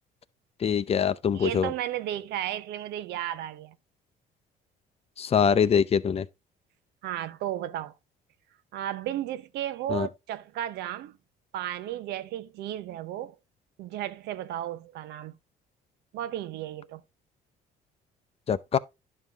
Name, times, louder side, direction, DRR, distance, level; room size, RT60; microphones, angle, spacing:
voice 1, 0.6-1.7 5.2-6.3 9.9-10.1 18.5-18.8, left 7 dB, 35° left, 0.6 m, -24 dB
voice 2, 1.3-3.7 7.0-7.9 8.7-11.2 11.5-13.4 13.8-15.4 16.1-17.0, right 12 dB, 80° right, 0.9 m, -34 dB
11.0 x 5.5 x 3.6 m
cardioid pair, 110°, 17 cm